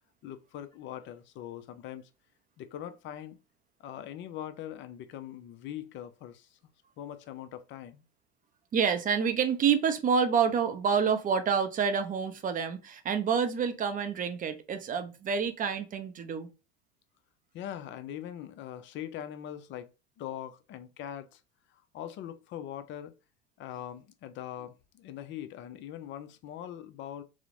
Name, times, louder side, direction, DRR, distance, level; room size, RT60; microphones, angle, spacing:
voice 1, 0.2-2.1 2.6-3.4 3.8-6.6 7.0-8.0 17.5-21.4 21.7-23.2 23.6-27.2, left 11 dB, 35° left, 0.4 m, -42 dB
voice 2, 8.7-16.5, right 6 dB, 25° right, 0.5 m, -28 dB
2.9 x 2.0 x 2.4 m
hypercardioid pair, 90°, 33 cm